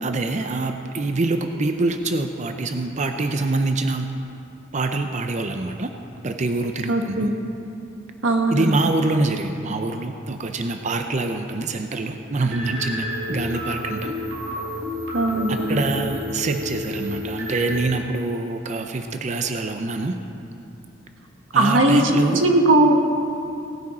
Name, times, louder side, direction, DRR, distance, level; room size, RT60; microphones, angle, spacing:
voice 1, 0.0-4.1 4.7-5.9 6.2-7.4 8.5-14.1 15.5-20.2 21.5-22.4, right 2 dB, 40° right, 6 dB, 0.5 m, -25 dB
voice 2, 6.9-7.4 8.2-8.7 15.1-15.8 21.5-23.0, right 1 dB, 90° right, 4 dB, 1.3 m, -19 dB
sound 1, 12.5-17.8, left 1 dB, 60° right, 2.4 m, -30 dB
18.0 x 10.0 x 4.2 m, 2.7 s
head